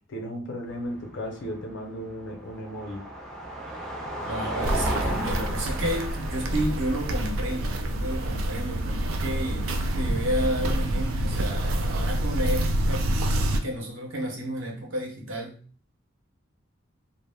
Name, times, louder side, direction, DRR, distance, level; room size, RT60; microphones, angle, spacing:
voice 1, 0.1-3.0, equal, 60° left, 2 dB, 0.6 m, -35 dB
Car passing by, 0.7-9.0, right 1 dB, ahead, 0.4 m, -35 dB
voice 2, 4.3-9.7 9.9-13.2 13.6-15.6, equal, 70° right, -1 dB, 0.8 m, -31 dB
Walk footsteps, 4.6-13.6, right 1 dB, 90° right, 0.3 m, -27 dB
2.1 x 2.0 x 3.3 m, 0.41 s
head